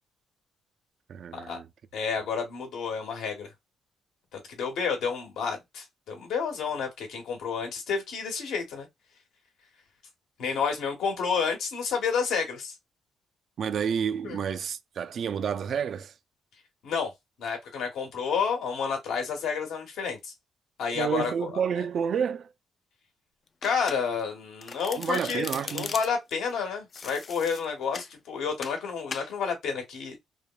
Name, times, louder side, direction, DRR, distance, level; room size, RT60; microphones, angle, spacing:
voice 1, 1.1-1.7 13.6-16.1 20.9-22.5 25.0-25.9, right 7 dB, 60° right, 0.3 m, -30 dB
voice 2, 1.9-3.5 4.3-8.9 10.4-12.7 14.2-14.4 16.8-17.1 17.4-20.3 20.8-21.5 23.6-30.2, left 6 dB, 80° left, 1.1 m, -30 dB
Domestic sounds home sounds, 23.6-24.3 24.6-26.3 26.9-28.1 28.6-28.8 29.1-29.3, left 5 dB, 40° left, 0.3 m, -39 dB
3.2 x 2.0 x 2.2 m
cardioid pair, 90°, 0 cm